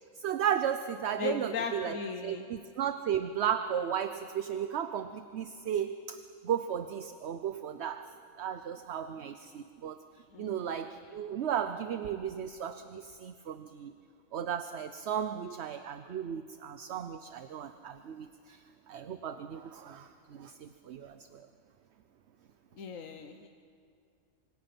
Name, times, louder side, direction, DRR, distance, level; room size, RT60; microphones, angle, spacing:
voice 1, 0.2-2.0 2.2-8.1 8.4-10.0 10.4-13.9 14.3-21.5, right 9 dB, 60° right, 10 dB, 0.9 m, -35 dB
voice 2, 1.2-2.5 10.3-10.7 22.8-23.5, left 6 dB, 80° left, 5 dB, 1.4 m, -37 dB
27.0 x 25.0 x 6.0 m, 2.3 s
omnidirectional pair, 1.4 m